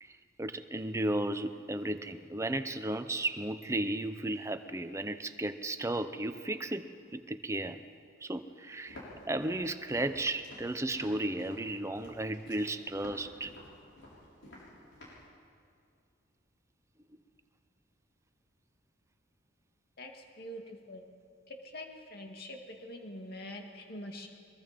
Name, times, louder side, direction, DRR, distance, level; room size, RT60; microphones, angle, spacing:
voice 1, 0.4-7.8 8.2-9.0 9.3-13.5, right 1 dB, 15° right, 9 dB, 0.8 m, -34 dB
Walk footsteps, 8.9-15.3, left 1 dB, 70° left, 7.2 m, -51 dB
voice 2, 20.0-21.0 21.5-24.3, left 1 dB, 55° left, 2 dB, 2.4 m, -45 dB
24.0 x 22.0 x 5.3 m, 2.3 s
head